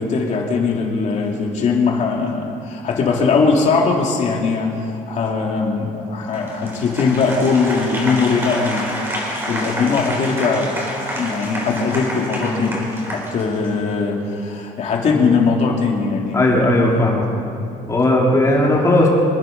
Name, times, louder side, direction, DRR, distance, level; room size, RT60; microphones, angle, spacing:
voice 1, 0.0-10.8 11.1-16.7 17.0-17.2, left 4 dB, 50° left, 0 dB, 2.8 m, -20 dB
Applause, 6.3-13.9, equal, 15° right, 4.2 m, -28 dB
voice 2, 16.3-17.3 17.9-19.1, left 1 dB, 20° left, -3 dB, 3.2 m, -16 dB
26.0 x 10.5 x 5.3 m, 2.7 s
cardioid pair, 145°, 15 cm